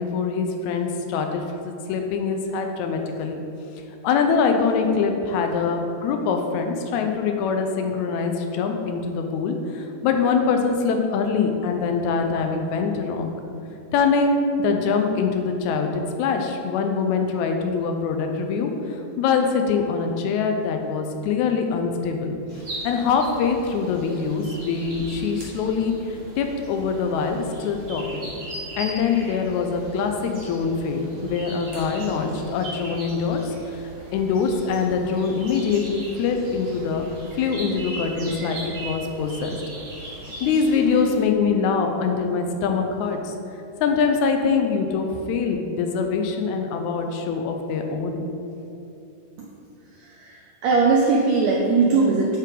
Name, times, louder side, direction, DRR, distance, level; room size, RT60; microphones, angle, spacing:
voice 1, 0.0-3.4 4.0-13.3 13.9-22.4 22.8-28.3 28.8-33.8 34.1-37.1 37.4-39.5 40.4-43.3 43.8-48.2, left 5 dB, 80° left, 4 dB, 1.8 m, -24 dB
sound 1, 22.5-41.2, right 1 dB, 45° right, 0.7 m, -39 dB
voice 2, 50.0-52.4, right 4 dB, 85° right, -2 dB, 1.5 m, -20 dB
8.5 x 5.5 x 3.8 m, 2.8 s
omnidirectional pair, 3.8 m